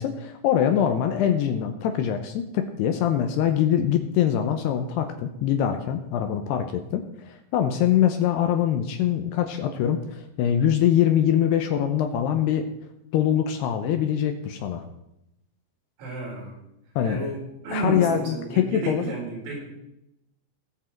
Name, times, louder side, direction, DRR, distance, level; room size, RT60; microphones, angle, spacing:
voice 1, 0.0-12.6 13.1-14.8 17.0-17.2 17.7-19.0, left 9 dB, 75° left, 7 dB, 2.6 m, -23 dB
voice 2, 16.0-16.6 17.0-19.6, right 2 dB, 80° right, -4 dB, 7.1 m, -32 dB
20.5 x 7.3 x 4.5 m, 0.84 s
omnidirectional pair, 5.3 m